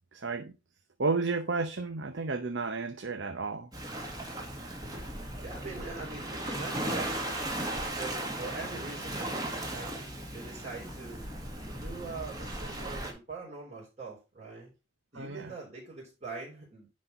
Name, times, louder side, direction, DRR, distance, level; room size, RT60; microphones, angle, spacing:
voice 1, 0.1-0.5 1.0-3.7 15.1-15.5, right 4 dB, 60° right, 0.8 m, -32 dB
Waves surf, 3.7-13.1, right 1 dB, 20° right, 1.8 m, -37 dB
voice 2, 5.4-7.2 8.0-11.2 11.7-14.7 15.1-16.9, right 3 dB, 35° right, 3.9 m, -43 dB
10.5 x 4.2 x 5.3 m
head